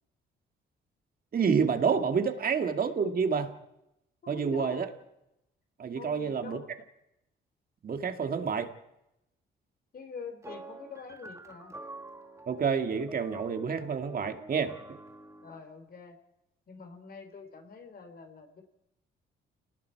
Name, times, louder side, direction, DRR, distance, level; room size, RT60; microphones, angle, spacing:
voice 1, 1.3-3.5 4.3-4.9 5.8-6.6 7.8-8.7 12.5-14.7, right 6 dB, 45° right, 6 dB, 2.1 m, -28 dB
voice 2, 4.2-4.9 5.9-6.7 8.4-8.6 9.9-11.7 15.4-16.2 16.7-18.6, left 4 dB, 50° left, 7 dB, 3.7 m, -45 dB
sound 1, 10.4-15.7, right 2 dB, 15° right, 1.6 m, -47 dB
29.0 x 19.5 x 4.7 m, 0.86 s
cardioid pair, 90°, 20 cm